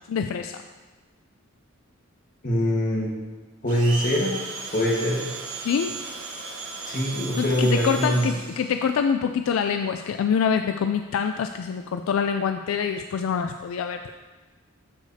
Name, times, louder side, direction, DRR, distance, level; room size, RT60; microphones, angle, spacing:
voice 1, 0.1-0.6 5.6-6.0 7.4-14.1, left 7 dB, 75° left, 7 dB, 0.3 m, -25 dB
voice 2, 2.4-3.1 3.6-4.3 4.7-5.5 6.8-8.4, equal, 40° left, -2 dB, 1.4 m, -23 dB
Domestic sounds home sounds, 3.7-8.8, right 3 dB, 70° right, 1.1 m, -35 dB
13.0 x 4.9 x 2.7 m, 1.3 s
head